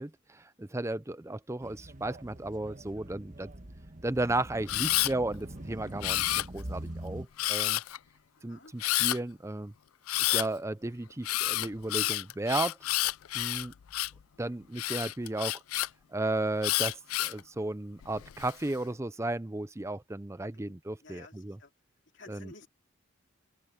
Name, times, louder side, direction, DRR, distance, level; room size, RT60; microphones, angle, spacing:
voice 1, 0.0-3.5 4.0-7.8 8.4-9.7 10.3-12.8 13.3-13.7 14.4-15.6 16.1-21.6 22.3-22.5, right 2 dB, 15° right, 0.5 m, -34 dB
sound 1, 1.6-7.3, right 1 dB, 35° right, 1.3 m, -44 dB
Camera, 4.7-5.1 6.0-6.8 7.4-8.0 8.8-9.2 10.1-10.5 11.2-14.2 14.8-15.9 16.6-17.4 18.0-18.5, left 16 dB, 85° left, 0.4 m, -29 dB
voice 2, 8.3-8.7 15.2-15.4 20.5-20.7 21.0-21.7 22.1-22.7, left 3 dB, 55° left, 2.7 m, -53 dB
open air
head